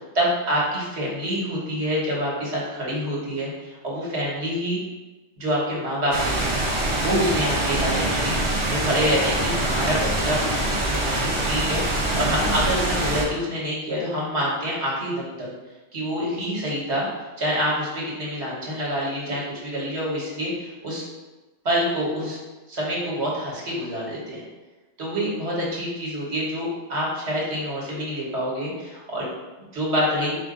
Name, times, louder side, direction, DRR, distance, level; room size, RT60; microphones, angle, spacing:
voice 1, 0.1-4.8 5.4-6.5 7.0-10.6 10.9-15.5 15.9-17.1 17.4-21.1 21.6-22.4 22.7-24.4 25.0-29.3 29.7-30.4, equal, 70° right, -5 dB, 1.6 m, -26 dB
sound 1, 6.1-13.2, right 1 dB, 35° right, 0.6 m, -24 dB
4.6 x 2.5 x 3.8 m, 1.1 s
omnidirectional pair, 1.2 m